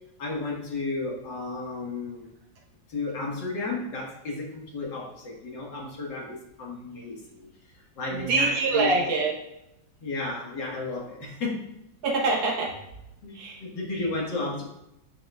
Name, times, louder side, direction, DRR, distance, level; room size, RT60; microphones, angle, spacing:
voice 1, 0.2-2.3 2.9-7.5 8.0-9.0 10.0-11.6 13.2-14.6, left 3 dB, 70° left, -2 dB, 2.2 m, -33 dB
voice 2, 8.1-9.4 12.0-12.7 13.3-13.6, right 3 dB, 90° right, -2 dB, 1.9 m, -24 dB
9.5 x 6.5 x 2.4 m, 0.85 s
omnidirectional pair, 2.0 m